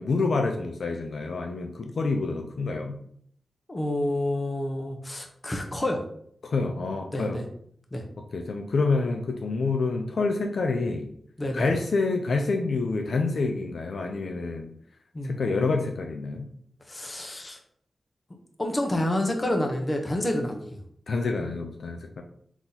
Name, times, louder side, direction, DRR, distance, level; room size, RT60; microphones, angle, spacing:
voice 1, 0.0-3.0 6.4-7.4 8.3-11.1 11.5-14.7 15.2-16.5 21.1-22.2, left 3 dB, 75° left, 3 dB, 0.5 m, -27 dB
voice 2, 3.7-6.1 7.1-7.4 7.9-8.0 11.4-11.7 15.1-15.4 16.9-17.6 18.6-20.7, left 1 dB, 30° left, 3 dB, 0.9 m, -28 dB
3.9 x 3.0 x 4.0 m, 0.64 s
cardioid pair, 60°, 0 cm